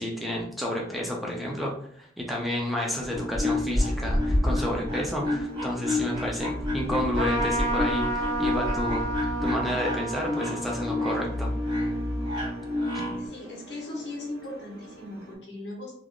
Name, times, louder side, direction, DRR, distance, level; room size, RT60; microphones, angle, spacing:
voice 1, 0.0-9.1 9.4-11.5, left 1 dB, ahead, -2 dB, 0.4 m, -30 dB
sound 1, 3.1-13.3, left 1 dB, 25° right, 0.8 m, -29 dB
sound 2, 3.8-15.4, right 1 dB, 70° right, 0.6 m, -48 dB
Trumpet, 7.1-13.0, right 2 dB, 45° right, 1.4 m, -32 dB
voice 2, 13.2-15.9, left 2 dB, 90° left, -1 dB, 1.0 m, -38 dB
3.4 x 2.4 x 2.3 m, 0.62 s
head